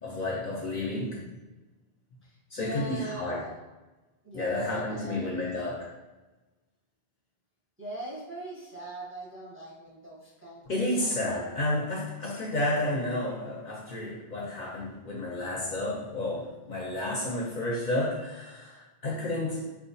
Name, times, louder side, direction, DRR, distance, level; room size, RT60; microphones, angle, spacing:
voice 1, 0.0-1.3 2.5-3.4 4.3-5.9 10.7-19.6, left 1 dB, 55° left, -3 dB, 0.6 m, -31 dB
voice 2, 2.2-3.6 4.2-5.5 7.8-11.3, right 1 dB, 15° right, -5 dB, 0.5 m, -41 dB
3.7 x 2.5 x 2.6 m, 1.1 s
omnidirectional pair, 1.1 m